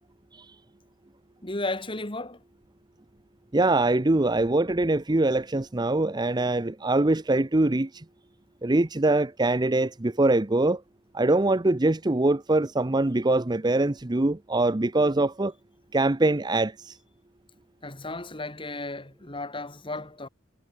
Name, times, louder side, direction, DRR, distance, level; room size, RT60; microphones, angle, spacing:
voice 1, 1.4-2.4 17.8-20.3, left 2 dB, 25° left, 3.0 m, -34 dB
voice 2, 3.5-8.0 8.6-10.8 11.1-15.5 15.9-17.0, right 2 dB, 20° right, 0.7 m, -23 dB
head